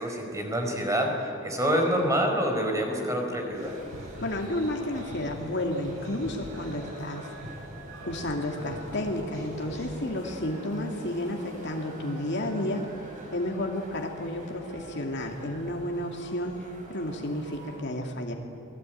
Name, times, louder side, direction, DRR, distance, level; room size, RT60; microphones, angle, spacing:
voice 1, 0.0-3.8, equal, 15° right, 3 dB, 4.8 m, -27 dB
sound 1, 3.5-17.8, right 1 dB, 40° right, 6.5 m, -45 dB
sound 2, 3.5-9.9, equal, 80° right, 6.9 m, -44 dB
voice 2, 4.2-7.3 8.0-12.8 13.3-18.3, left 1 dB, 60° left, 1 dB, 2.6 m, -31 dB
29.0 x 20.5 x 9.3 m, 2.7 s
head